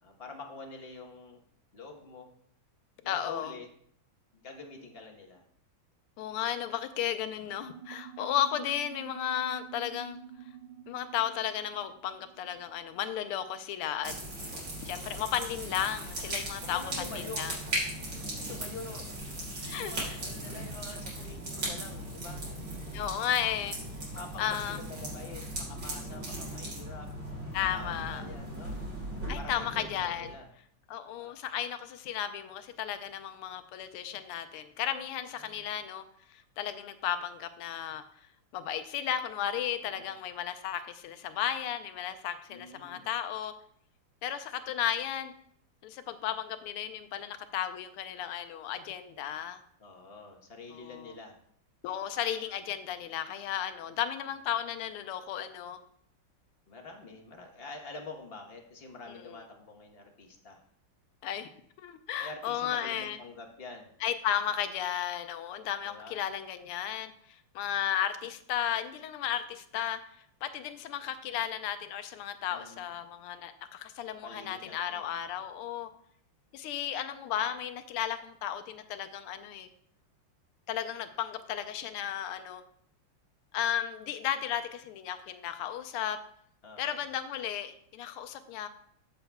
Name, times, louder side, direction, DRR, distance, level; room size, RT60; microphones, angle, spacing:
voice 1, 0.0-1.4 1.7-2.3 3.0-3.7 4.3-5.4 7.4-7.5 14.9-15.2 16.6-17.5 18.2-19.1 19.6-22.5 24.1-27.1 27.7-28.8 29.3-30.5 31.0-31.4 35.4-35.8 39.8-40.2 42.5-43.1 49.8-51.4 56.7-60.6 62.2-63.9 65.8-66.2 72.5-72.9 74.2-75.4 86.6-87.0, left 3 dB, 35° left, 2 dB, 1.0 m, -46 dB
voice 2, 3.1-3.5 6.2-10.2 10.9-14.1 14.8-17.5 19.6-20.2 22.9-23.8 24.4-24.8 27.5-28.2 29.3-30.3 30.9-36.0 36.3-38.0 38.5-43.5 44.2-45.3 45.8-49.6 50.7-51.1 51.8-55.8 59.1-59.4 61.2-61.5 61.8-63.2 64.0-67.1 67.5-70.0 70.4-75.9 76.5-79.7 80.7-82.6 83.5-86.2 86.8-88.7, left 10 dB, 85° left, 10 dB, 1.6 m, -34 dB
sound 1, 7.5-13.4, right 10 dB, 80° right, 1.8 m, -49 dB
sound 2, 14.0-30.3, right 1 dB, 60° right, 4.0 m, -38 dB
14.0 x 6.9 x 2.3 m, 0.65 s
omnidirectional pair, 2.4 m